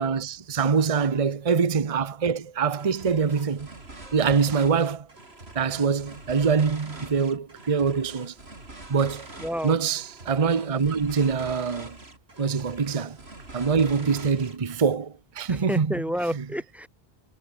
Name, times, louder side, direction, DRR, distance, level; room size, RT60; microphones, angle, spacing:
voice 1, 0.0-3.7 4.1-5.1 5.5-8.3 8.9-9.3 9.6-12.0 12.4-13.2 13.5-15.9, right 5 dB, 35° right, 0.9 m, -24 dB
sound 1, 2.8-15.0, right 2 dB, 75° right, 4.4 m, -44 dB
voice 2, 9.4-9.8 15.5-16.9, equal, ahead, 7.9 m, -30 dB
omnidirectional pair, 1.1 m